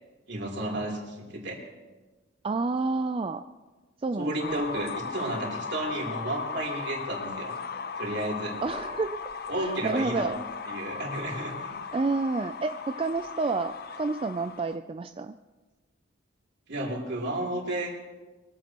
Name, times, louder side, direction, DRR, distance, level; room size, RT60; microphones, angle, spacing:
voice 1, 0.3-1.6 4.2-7.6 8.0-8.6 9.5-10.4 10.7-11.8 16.7-17.9, right 1 dB, 60° right, -1 dB, 3.4 m, -32 dB
voice 2, 2.4-3.4 4.0-4.6 8.6-9.2 9.5-10.3 11.9-15.3, right 3 dB, 30° right, 8 dB, 0.3 m, -29 dB
sound 1, 4.4-14.8, left 5 dB, 50° left, 0.6 m, -37 dB
22.0 x 15.0 x 3.0 m, 1.2 s
head